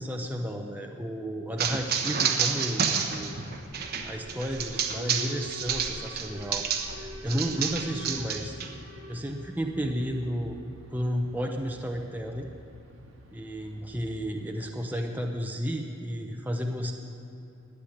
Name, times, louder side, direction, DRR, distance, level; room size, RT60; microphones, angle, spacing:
voice 1, 0.0-3.3 4.0-6.7 6.9-8.6 9.1-10.6 10.9-12.5 13.3-16.9, equal, 10° right, 2 dB, 0.8 m, -32 dB
sound 1, 1.6-7.0 7.3-8.7, right 6 dB, 50° right, 1.1 m, -29 dB
Alarm, 3.1-15.1, equal, 75° right, 1.7 m, -47 dB
12.0 x 8.3 x 9.8 m, 2.8 s
head